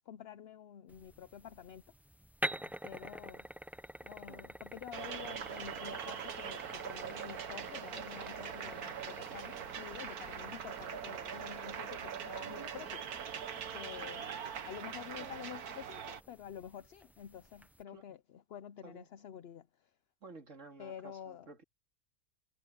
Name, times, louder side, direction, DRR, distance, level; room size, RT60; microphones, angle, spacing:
voice 1, 0.0-1.8 2.6-3.5 4.0-13.0 13.7-19.7 20.8-21.5, left 9 dB, 60° left, 0.7 m, -49 dB
sound 1, 0.9-17.8, equal, ahead, 0.5 m, -48 dB
sound 2, 4.9-16.2, right 8 dB, 80° right, 1.7 m, -42 dB
voice 2, 20.2-21.6, right 4 dB, 55° right, 2.6 m, -53 dB
omnidirectional pair, 1.6 m